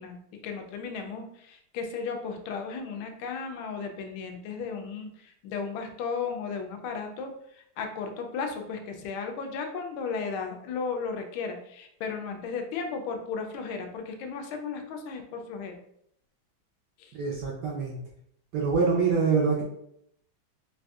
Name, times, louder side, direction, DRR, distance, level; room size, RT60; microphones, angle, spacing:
voice 1, 0.0-15.8 17.0-17.1, left 5 dB, 80° left, 4 dB, 1.4 m, -35 dB
voice 2, 17.1-18.0 18.5-19.6, right 5 dB, 70° right, -3 dB, 1.0 m, -25 dB
4.0 x 2.6 x 2.3 m, 0.72 s
omnidirectional pair, 2.3 m